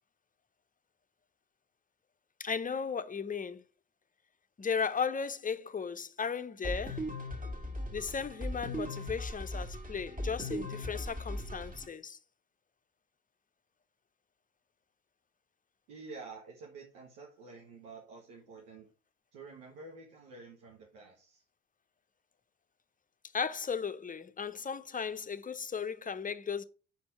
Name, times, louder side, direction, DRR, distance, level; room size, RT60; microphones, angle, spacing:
voice 1, 2.4-3.6 4.6-7.0 7.9-12.2 23.3-26.6, left 6 dB, 20° left, 0.7 m, -36 dB
sound 1, 6.6-11.9, left 1 dB, 20° right, 1.9 m, -38 dB
voice 2, 15.9-18.9 19.3-21.4, right 4 dB, 80° right, 1.4 m, -49 dB
6.3 x 4.3 x 5.6 m
hypercardioid pair, 50°, 36 cm